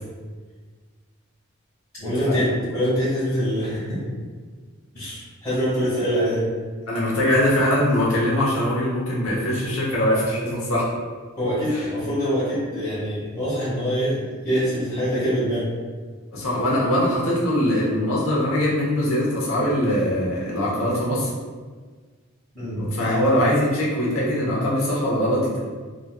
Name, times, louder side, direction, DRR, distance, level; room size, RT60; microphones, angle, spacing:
voice 1, 2.0-4.1 4.9-6.5 11.4-15.7 22.5-22.9, equal, 20° left, -13 dB, 1.2 m, -24 dB
voice 2, 6.9-10.8 11.7-11.8 16.3-21.3 22.8-25.6, left 1 dB, 75° left, -6 dB, 1.0 m, -22 dB
3.1 x 2.6 x 2.3 m, 1.5 s
head